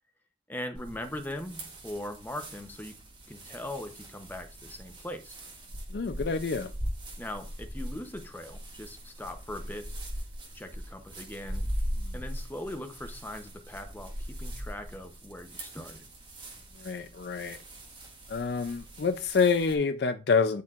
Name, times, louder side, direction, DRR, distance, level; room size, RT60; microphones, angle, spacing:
voice 1, 0.5-5.4 7.2-9.9 10.5-11.7 12.1-16.1, left 1 dB, 10° left, 0.7 m, -40 dB
sound 1, 0.7-19.7, equal, 25° right, 1.6 m, -40 dB
voice 2, 5.9-6.7 12.0-12.1 16.8-17.6 18.3-20.6, left 5 dB, 65° left, 0.4 m, -27 dB
12.0 x 4.5 x 2.5 m
head